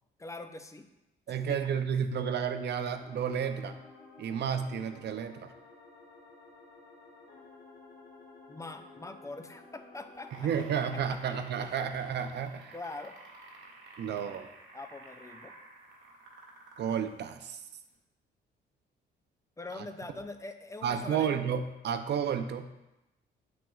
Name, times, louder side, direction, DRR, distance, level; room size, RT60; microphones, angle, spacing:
voice 1, 0.2-0.9 1.5-1.6 8.5-10.3 11.6-11.8 12.7-13.2 14.7-15.5 19.6-21.3, left 2 dB, 15° left, 7 dB, 0.4 m, -43 dB
voice 2, 1.3-3.8 4.2-5.5 10.4-12.7 14.0-14.5 16.8-17.6 19.7-19.9 20.8-22.7, right 7 dB, 60° right, 8 dB, 0.6 m, -32 dB
sound 1, 2.9-11.6, left 3 dB, 70° left, 2.1 m, -54 dB
sound 2, 10.1-17.1 17.9-18.0, right 2 dB, 80° right, 1.4 m, -52 dB
6.9 x 6.1 x 2.4 m, 0.95 s
cardioid pair, 90°, 20 cm